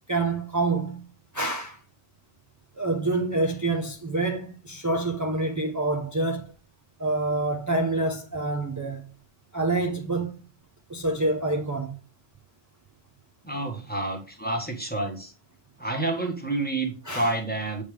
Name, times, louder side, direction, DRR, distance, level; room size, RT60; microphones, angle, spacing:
voice 1, 0.1-1.0 1.3-1.8 2.8-6.5 7.0-9.0 9.5-10.3 10.9-11.9 17.1-17.3, right 2 dB, 25° right, 0.4 m, -27 dB
voice 2, 13.4-15.3 15.8-17.8, right 2 dB, 10° left, 1.3 m, -29 dB
7.1 x 3.5 x 5.0 m
omnidirectional pair, 1.3 m